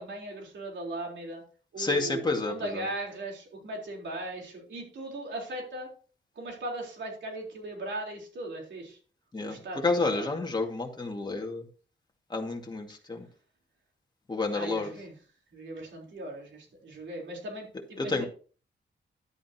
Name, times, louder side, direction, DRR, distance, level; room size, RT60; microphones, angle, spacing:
voice 1, 0.0-1.4 1.7-2.2 2.5-5.9 6.3-9.0 9.4-10.3 14.5-15.2 15.5-18.3, right 1 dB, 85° right, 0 dB, 4.1 m, -38 dB
voice 2, 1.8-2.8 9.3-11.6 12.3-13.3 14.3-14.9 18.0-18.3, left 3 dB, 25° left, 2 dB, 2.2 m, -30 dB
11.5 x 9.2 x 3.0 m, 0.39 s
wide cardioid pair, 110°, 19 cm